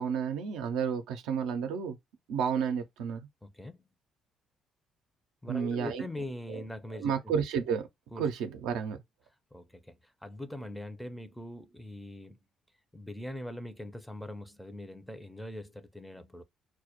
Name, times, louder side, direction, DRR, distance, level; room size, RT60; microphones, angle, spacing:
voice 1, 0.0-2.0 2.3-3.3 5.5-6.1 7.0-7.9 8.2-9.0, right 7 dB, 80° right, 0.4 m, -31 dB
voice 2, 3.4-3.8 5.4-7.3 8.1-8.3 9.5-12.4 12.9-16.4, left 1 dB, 5° left, 0.5 m, -42 dB
2.2 x 2.0 x 2.8 m
supercardioid pair, 60°, 0 cm